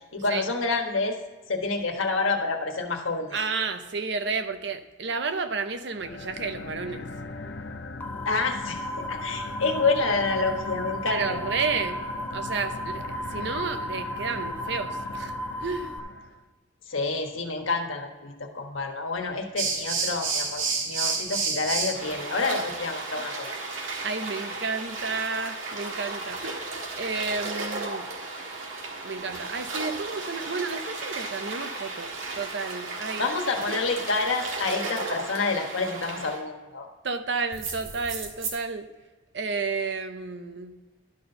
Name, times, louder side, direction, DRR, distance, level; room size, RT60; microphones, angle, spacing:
voice 1, 0.1-1.2 1.5-3.3 8.2-11.4 16.9-23.5 33.2-36.9, left 3 dB, 85° left, 3 dB, 1.3 m, -28 dB
voice 2, 3.3-7.1 11.1-12.0 12.3-16.0 24.0-28.1 29.0-33.3 37.0-38.9 39.3-40.8, right 4 dB, 60° right, 9 dB, 0.7 m, -31 dB
sound 1, 5.9-16.4, left 3 dB, 60° left, 0.7 m, -39 dB
sound 2, 8.0-16.0, equal, 10° left, 0.4 m, -35 dB
sound 3, 19.6-36.4 37.5-38.5, right 3 dB, 90° right, 1.6 m, -33 dB
11.5 x 4.4 x 6.6 m, 1.2 s
head